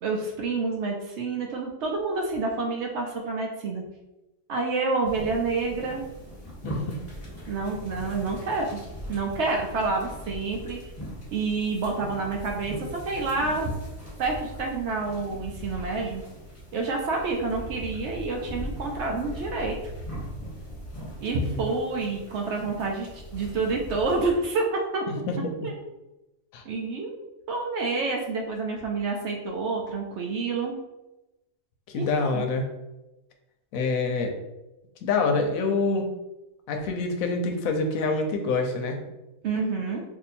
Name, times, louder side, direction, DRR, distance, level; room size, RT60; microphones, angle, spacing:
voice 1, 0.0-3.8 4.5-6.0 7.5-8.8 9.1-10.8 11.3-13.7 14.2-16.2 16.7-19.8 21.2-25.0 25.6-25.7 26.7-27.1 27.5-30.7 31.9-32.4 39.4-40.0, right 3 dB, 65° right, 1 dB, 0.7 m, -28 dB
sound 1, 5.0-24.3, equal, 10° left, 1.3 m, -40 dB
voice 2, 6.6-7.0 21.4-21.7 25.1-25.7 26.5-26.6 31.9-32.6 33.7-34.3 35.0-36.1 36.7-39.0, left 3 dB, 75° left, 4 dB, 1.0 m, -26 dB
2.7 x 2.6 x 4.1 m, 0.98 s
omnidirectional pair, 1.5 m